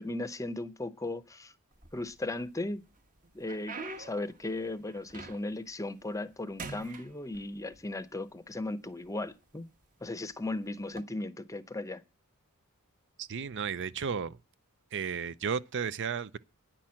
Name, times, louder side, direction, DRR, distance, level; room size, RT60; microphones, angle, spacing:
voice 1, 0.0-1.5 1.9-2.8 3.3-9.7 10.0-12.0, left 2 dB, 15° left, 0.7 m, -37 dB
sound 1, 1.7-2.5 3.0-5.7 6.1-6.3 6.6-7.8 8.6-8.7 9.4-9.6 10.8-11.0, right 3 dB, 40° right, 1.2 m, -45 dB
voice 2, 13.2-14.4 14.9-16.4, right 6 dB, 55° right, 0.6 m, -33 dB
10.0 x 6.0 x 8.6 m
head